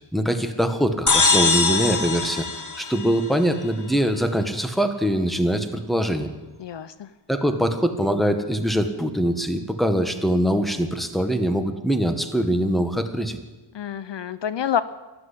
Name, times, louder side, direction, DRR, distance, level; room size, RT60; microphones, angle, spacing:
voice 1, 0.1-2.5 2.8-6.3 7.3-13.4, equal, ahead, 7 dB, 1.6 m, -23 dB
sound 1, 1.1-3.7, left 4 dB, 40° left, 1.8 m, -22 dB
voice 2, 6.6-7.1 13.7-14.8, left 9 dB, 70° left, 15 dB, 0.7 m, -27 dB
14.0 x 12.0 x 8.5 m, 1.1 s
wide cardioid pair, 80°, 45 cm